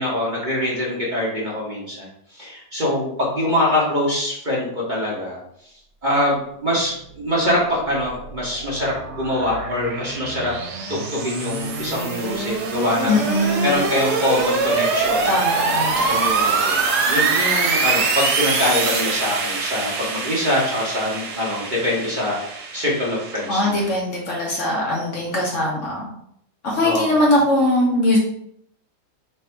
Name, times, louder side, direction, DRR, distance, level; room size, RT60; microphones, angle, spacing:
voice 1, 0.0-2.1 2.3-5.4 5.6-5.7 6.0-10.5 10.9-15.3 15.9-16.8 17.0-22.4 22.7-23.8 26.8-27.2, left 1 dB, 35° right, -6 dB, 1.0 m, -24 dB
sound 1, 8.0-24.0, right 4 dB, 80° right, 1.3 m, -24 dB
voice 2, 13.1-13.8 15.2-16.0 23.5-26.1 26.6-28.2, left 1 dB, 55° left, -3 dB, 1.2 m, -21 dB
3.4 x 2.6 x 4.4 m, 0.71 s
omnidirectional pair, 1.7 m